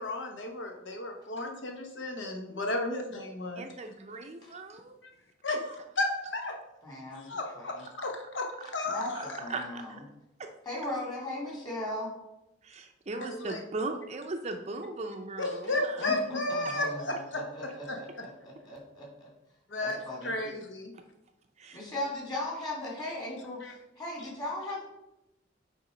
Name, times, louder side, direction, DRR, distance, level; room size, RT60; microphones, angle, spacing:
voice 1, 0.0-3.6 5.4-6.5 7.1-8.5 8.7-9.4 13.3-13.6 15.4-18.0 19.7-20.0 20.2-20.9 23.6-23.7, left 2 dB, 70° left, 2 dB, 1.0 m, -33 dB
voice 2, 3.6-5.0 9.1-9.2 9.5-10.0 10.4-10.5 12.6-16.1 16.6-16.7 21.6-21.8, right 3 dB, 35° right, 5 dB, 0.5 m, -38 dB
voice 3, 6.8-7.4 7.7-7.8 8.9-9.9 10.7-12.1 16.0-19.3 19.8-20.3 21.7-23.6 24.0-24.8, left 1 dB, 20° left, -3 dB, 2.4 m, -38 dB
8.3 x 3.6 x 5.0 m, 0.93 s
head